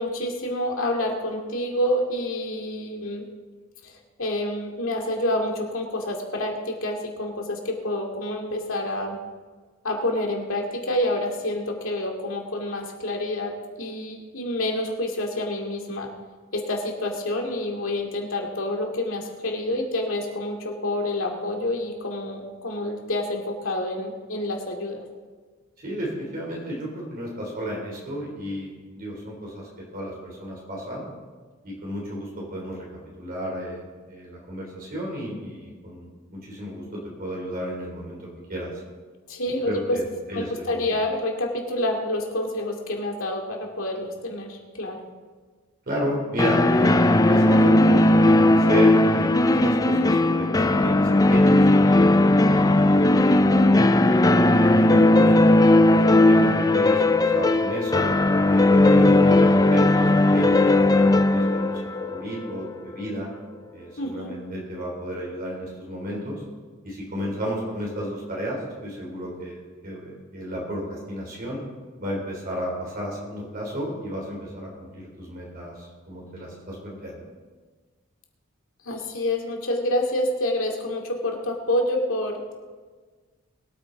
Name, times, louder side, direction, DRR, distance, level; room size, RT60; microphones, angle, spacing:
voice 1, 0.0-3.2 3.8-3.9 4.2-9.2 9.8-13.5 13.8-16.1 16.5-25.0 39.3-40.0 40.3-45.0 64.0-64.3 78.8-82.5, left 1 dB, 70° left, 1 dB, 2.4 m, -28 dB
voice 2, 25.8-31.0 31.6-32.8 33.2-38.7 39.6-40.9 45.9-52.2 52.4-52.9 53.1-55.3 55.9-58.0 58.5-63.3 63.7-66.4 66.8-71.6 72.0-77.3, equal, 45° right, -3 dB, 3.4 m, -32 dB
sound 1, 46.4-63.1, left 2 dB, 20° left, 0.4 m, -17 dB
22.5 x 8.7 x 3.9 m, 1.4 s
head